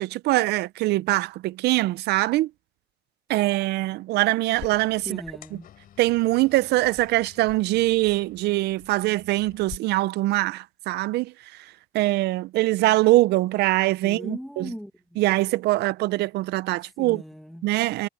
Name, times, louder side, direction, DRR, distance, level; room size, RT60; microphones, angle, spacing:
voice 1, 0.0-2.5 3.3-5.2 6.0-11.3 11.9-14.7 15.2-17.2 17.6-18.1, right 18 dB, 75° right, 0.5 m, -23 dB
sound 1, 4.5-9.8, left 10 dB, 60° left, 3.6 m, -47 dB
voice 2, 5.0-5.7 14.0-15.2 16.8-17.7, equal, ahead, 1.6 m, -39 dB
cardioid pair, 110°, 17 cm